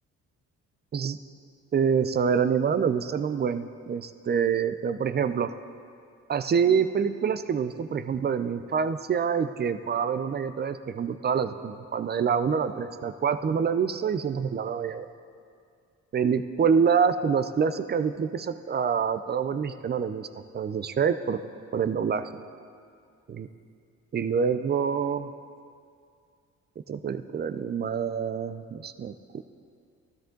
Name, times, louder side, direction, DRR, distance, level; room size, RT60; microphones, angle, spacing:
voice 1, 1.7-5.5 6.3-15.1 16.1-20.3 20.5-21.4 21.7-22.3 23.4-23.5 24.1-25.3 26.9-29.4, right 6 dB, 35° right, 11 dB, 0.5 m, -26 dB
13.0 x 13.0 x 3.9 m, 2.3 s
cardioid pair, 90°, 30 cm